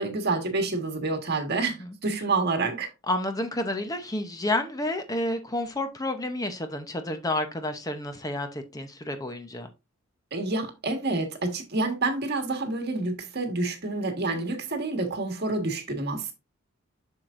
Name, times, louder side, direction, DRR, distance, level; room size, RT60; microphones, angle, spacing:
voice 1, 0.0-2.9 10.3-16.3, right 3 dB, 50° right, 1.5 m, -28 dB
voice 2, 3.1-9.7, left 1 dB, 15° left, 0.7 m, -30 dB
7.5 x 6.4 x 2.5 m
head